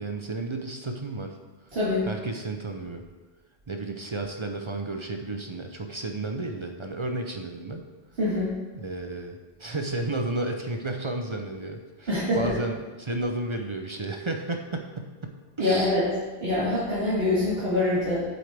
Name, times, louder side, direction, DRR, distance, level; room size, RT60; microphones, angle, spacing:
voice 1, 0.0-1.4 2.1-3.0 3.7-7.8 8.8-16.0, right 2 dB, 35° right, 4 dB, 0.6 m, -32 dB
voice 2, 1.7-2.1 8.2-8.5 12.1-12.5 15.6-16.1 16.4-18.2, left 1 dB, 70° right, -10 dB, 2.2 m, -24 dB
8.0 x 7.9 x 3.4 m, 1.3 s
omnidirectional pair, 1.0 m